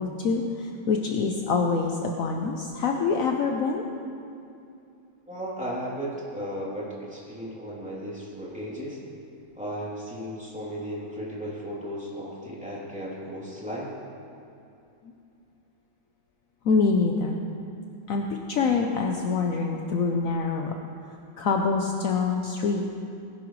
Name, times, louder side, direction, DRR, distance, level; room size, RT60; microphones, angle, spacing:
voice 1, 0.0-3.8 16.6-17.4 18.1-20.7 21.4-22.9, left 4 dB, 70° left, 2 dB, 0.8 m, -25 dB
voice 2, 5.3-9.0 9.6-13.9, equal, 5° right, -7 dB, 2.8 m, -35 dB
19.5 x 11.0 x 3.1 m, 2.6 s
omnidirectional pair, 2.2 m